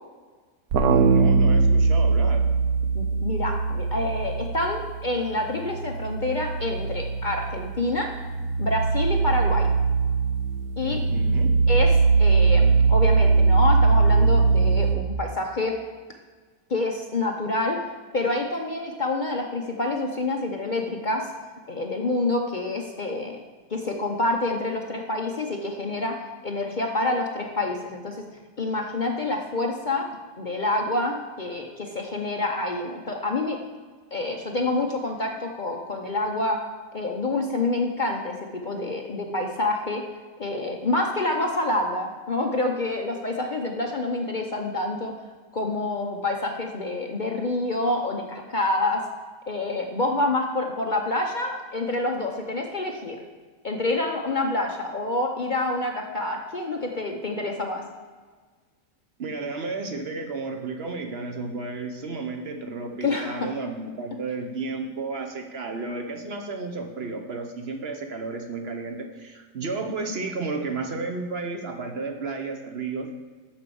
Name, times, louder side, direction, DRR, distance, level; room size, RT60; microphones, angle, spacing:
sound 1, 0.7-5.1 5.4-14.9, right 4 dB, 75° right, 1.2 m, -21 dB
voice 1, 0.9-2.4 10.8-11.6 59.2-73.1, right 3 dB, 50° right, 5 dB, 0.9 m, -32 dB
voice 2, 2.9-8.1 8.6-9.7 10.8-11.0 11.7-11.9 12.2-15.8 16.7-17.8 18.1-21.3 21.7-23.4 23.7-26.2 26.4-28.2 28.6-30.1 30.4-33.6 34.1-36.6 36.9-40.0 40.4-45.1 45.5-49.0 49.5-53.2 53.6-57.8 63.0-63.5, left 2 dB, 45° left, 2 dB, 0.6 m, -27 dB
7.4 x 6.1 x 6.9 m, 1.5 s
omnidirectional pair, 1.7 m